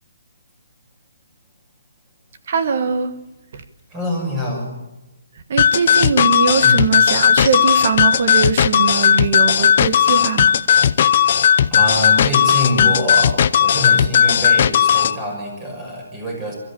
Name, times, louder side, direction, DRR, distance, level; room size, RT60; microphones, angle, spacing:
voice 1, 2.5-3.1 3.5-3.6 5.5-10.5, right 5 dB, 45° right, 10 dB, 1.5 m, -21 dB
voice 2, 3.9-4.7 6.6-6.8 7.4-7.5 11.4-16.5, left 1 dB, 15° right, 1 dB, 6.3 m, -25 dB
sound 1, 5.6-15.2, left 8 dB, 45° left, 0.6 m, -15 dB
25.0 x 13.5 x 8.7 m, 1.0 s
hypercardioid pair, 165°, 0 cm